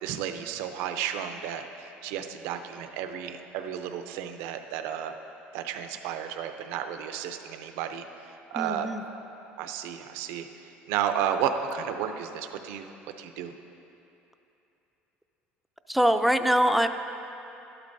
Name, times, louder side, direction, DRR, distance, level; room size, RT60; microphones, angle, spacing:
voice 1, 0.0-5.1 5.5-8.9 9.6-10.5 10.9-12.9 13.2-13.5, right 9 dB, 85° right, 7 dB, 0.6 m, -32 dB
voice 2, 8.6-9.0 15.9-16.9, equal, ahead, 8 dB, 0.4 m, -23 dB
12.0 x 12.0 x 2.7 m, 3.0 s
cardioid pair, 130°, 4 cm